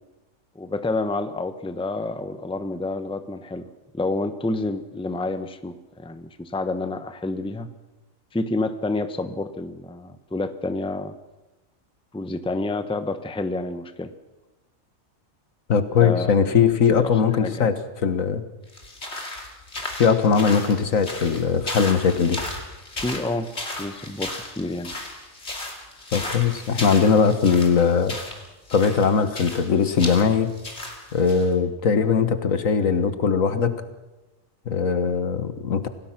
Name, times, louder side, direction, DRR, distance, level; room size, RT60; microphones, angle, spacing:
voice 1, 0.5-3.7 3.9-7.7 8.3-11.1 12.1-14.1 16.0-16.6 17.0-17.7 23.0-23.5 23.8-24.9, left 2 dB, 5° left, 10 dB, 0.8 m, -29 dB
voice 2, 15.7-18.4 20.0-22.4 26.1-28.2 28.7-30.5 31.1-33.7 34.7-35.9, left 6 dB, 75° left, 10 dB, 1.7 m, -20 dB
sound 1, 18.7-31.5, left 2 dB, 50° left, 3.2 m, -35 dB
27.0 x 18.0 x 6.0 m, 1.1 s
omnidirectional pair, 1.4 m